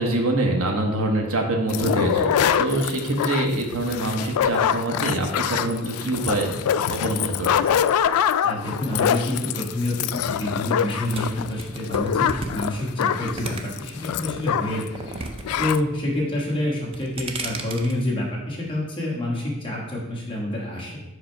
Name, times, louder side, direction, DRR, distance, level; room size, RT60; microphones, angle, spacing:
voice 1, 0.0-6.6 6.9-7.8, right 1 dB, 75° right, 2 dB, 1.1 m, -25 dB
sound 1, 1.7-14.9 15.1-15.2 15.4-15.8, left 9 dB, 85° left, 0.3 m, -24 dB
voice 2, 8.4-15.2 15.6-21.0, left 1 dB, 20° left, -3 dB, 1.3 m, -27 dB
sound 2, 11.1-14.0 14.4-15.7 16.0-16.4 16.8-17.9, right 3 dB, 25° right, 0.4 m, -34 dB
5.6 x 5.0 x 4.5 m, 1.1 s
head